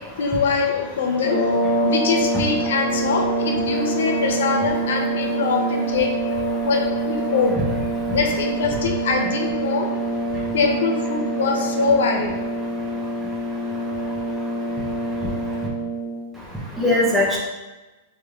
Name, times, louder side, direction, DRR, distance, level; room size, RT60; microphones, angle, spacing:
voice 1, 0.2-1.4 1.8-6.1 6.6-7.6 8.1-9.9 10.5-12.4, left 5 dB, 75° left, 2 dB, 0.6 m, -23 dB
sound 1, 1.1-16.3, right 2 dB, 50° left, 1.1 m, -25 dB
voice 2, 3.7-4.2 6.5-6.7 7.2-7.3 8.0-8.2 10.3-10.6 12.6-15.7 16.3-17.4, left 1 dB, 5° right, -5 dB, 0.7 m, -27 dB
4.6 x 3.2 x 2.4 m, 1.1 s
supercardioid pair, 170°, 0 cm